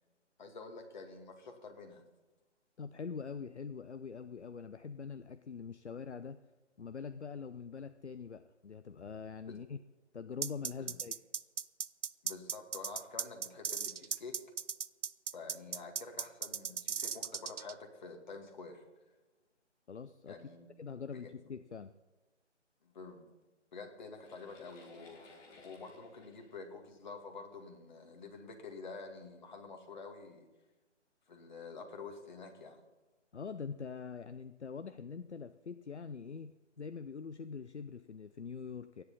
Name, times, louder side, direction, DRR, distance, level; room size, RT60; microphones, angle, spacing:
voice 1, 0.4-2.0 9.5-9.6 10.8-11.0 12.2-14.4 15.3-18.8 20.3-20.7 21.1-21.3 22.8-23.3 23.7-25.3 25.6-30.5 31.3-32.8, left 4 dB, 40° left, 3 dB, 2.4 m, -48 dB
voice 2, 2.8-6.4 6.8-9.8 10.1-11.2 19.9-20.4 20.8-21.9 33.3-39.0, left 6 dB, 65° left, 11 dB, 0.7 m, -44 dB
sound 1, 10.4-17.7, right 6 dB, 75° right, 0.6 m, -37 dB
sound 2, 24.2-27.6 28.4-28.5 29.1-29.3, left 3 dB, 10° left, 1.7 m, -59 dB
27.0 x 10.5 x 4.2 m, 1.1 s
figure-of-eight pair, 145°, 36 cm